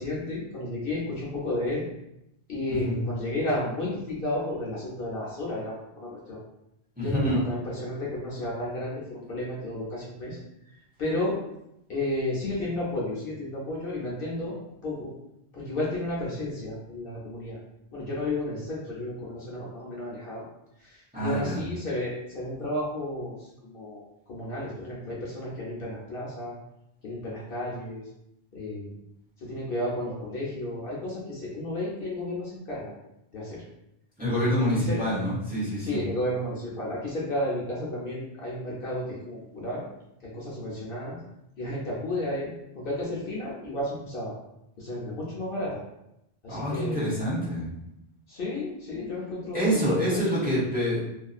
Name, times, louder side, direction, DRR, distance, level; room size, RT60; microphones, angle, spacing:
voice 1, 0.0-1.8 2.5-6.4 7.0-10.4 11.0-11.4 11.9-15.1 15.5-17.6 17.9-20.4 20.8-26.5 27.0-28.0 28.5-28.9 29.4-32.9 33.3-33.6 34.2-34.5 34.7-35.0 35.8-39.8 40.2-41.2 41.6-44.3 44.8-45.8 46.4-47.3 48.3-50.5, left 1 dB, 60° left, -6 dB, 0.9 m, -32 dB
voice 2, 7.0-7.4 21.1-21.6 34.2-36.0 46.5-47.7 49.5-51.0, equal, 10° right, -8 dB, 0.8 m, -26 dB
2.6 x 2.6 x 2.4 m, 0.83 s
omnidirectional pair, 1.1 m